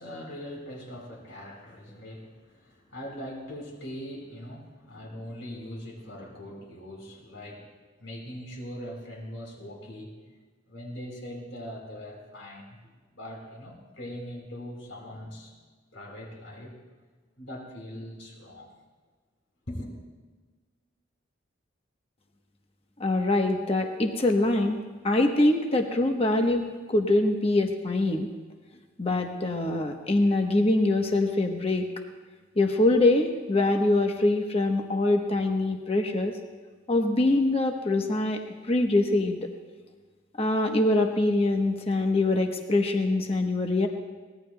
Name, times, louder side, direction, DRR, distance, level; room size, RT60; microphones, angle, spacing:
voice 1, 0.0-7.7 8.0-10.1 10.7-15.5 15.9-16.7 17.4-18.7 19.7-19.9, equal, 80° left, -1 dB, 4.6 m, -41 dB
voice 2, 23.0-28.3 29.0-31.9 32.6-36.4 36.9-38.4 38.7-39.4 40.4-43.9, left 2 dB, 30° left, 3 dB, 1.1 m, -24 dB
23.5 x 19.0 x 2.3 m, 1.4 s
head